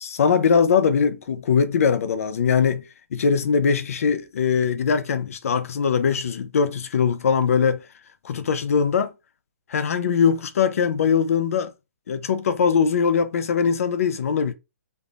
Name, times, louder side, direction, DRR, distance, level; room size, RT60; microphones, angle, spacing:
voice 1, 0.0-2.8 3.1-7.8 8.2-9.1 9.7-11.7 12.1-14.5, left 6 dB, 65° left, 0.5 m, -21 dB
3.5 x 2.0 x 2.4 m
hypercardioid pair, 160°, 8 cm